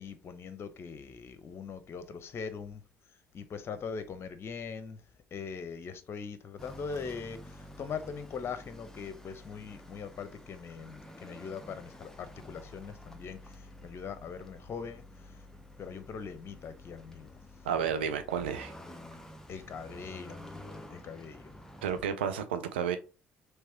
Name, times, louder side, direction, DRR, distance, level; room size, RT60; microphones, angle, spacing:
voice 1, 0.0-2.8 3.3-5.0 5.3-15.4 15.8-17.3 19.5-21.5, left 6 dB, 45° left, 0.8 m, -41 dB
sound 1, 6.6-22.1, left 1 dB, 10° left, 0.8 m, -50 dB
voice 2, 17.6-18.7 21.8-23.0, right 7 dB, 85° right, 0.5 m, -31 dB
3.4 x 3.3 x 4.2 m
hypercardioid pair, 50°, 6 cm